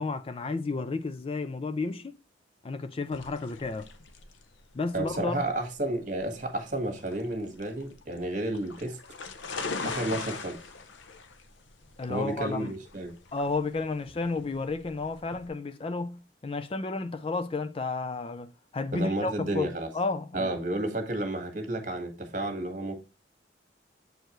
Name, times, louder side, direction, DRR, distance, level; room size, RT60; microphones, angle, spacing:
voice 1, 0.0-2.2 2.6-3.9 4.7-5.4 12.0-12.7 13.3-20.5, left 3 dB, 30° left, 0.4 m, -32 dB
sound 1, 3.1-15.5, left 4 dB, 85° left, 0.8 m, -41 dB
voice 2, 4.9-9.0 9.8-10.6 12.1-13.1 18.9-19.9 20.3-23.0, right 1 dB, 45° right, 1.6 m, -31 dB
7.8 x 4.5 x 3.0 m
head